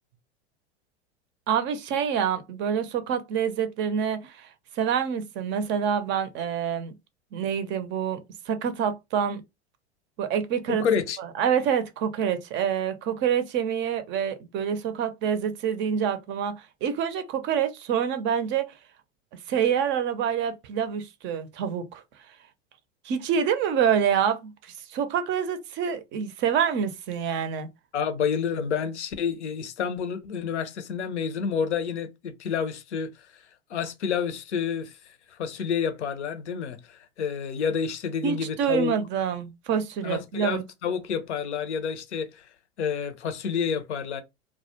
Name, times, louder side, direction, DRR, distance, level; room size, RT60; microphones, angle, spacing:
voice 1, 1.5-4.5 4.8-6.9 7.3-8.2 8.5-9.4 10.2-10.8 11.4-16.5 16.8-18.7 19.5-22.0 23.0-27.7 38.2-40.6, right 8 dB, 35° right, 0.5 m, -26 dB
voice 2, 10.8-11.2 27.9-38.9 40.0-44.2, left 7 dB, 85° left, 0.6 m, -29 dB
2.3 x 2.1 x 2.7 m
hypercardioid pair, 95°, 34 cm